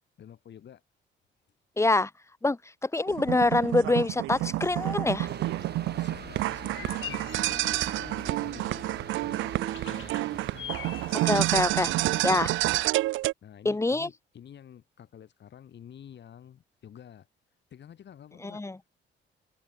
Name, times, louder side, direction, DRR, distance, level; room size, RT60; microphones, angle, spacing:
voice 1, 0.2-0.8 5.9-10.7 13.4-17.3 17.7-18.6, left 9 dB, 60° left, 6.2 m, -49 dB
voice 2, 1.8-2.1 2.4-5.3 11.2-11.9 12.2-12.5 13.6-14.1 18.4-18.8, left 2 dB, 15° left, 1.0 m, -25 dB
sound 1, 3.1-13.3, right 17 dB, 75° right, 0.4 m, -29 dB
sound 2, 4.3-12.6, left 12 dB, 75° left, 4.8 m, -46 dB
sound 3, 5.2-12.4, right 8 dB, 55° right, 4.1 m, -43 dB
open air
cardioid pair, 90°, 20 cm